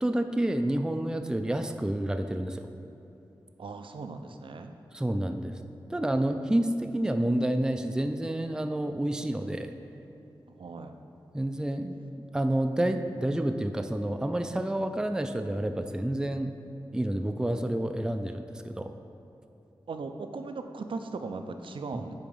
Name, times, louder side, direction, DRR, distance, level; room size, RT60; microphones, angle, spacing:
voice 1, 0.0-2.7 4.9-5.6 5.9-9.7 11.3-12.0 12.3-16.6 16.9-18.9, right 1 dB, 10° right, 7 dB, 0.4 m, -29 dB
voice 2, 3.6-4.7 10.5-11.0 19.9-22.1, right 4 dB, 70° right, 7 dB, 0.5 m, -38 dB
8.5 x 2.9 x 5.4 m, 2.9 s
cardioid pair, 50°, 9 cm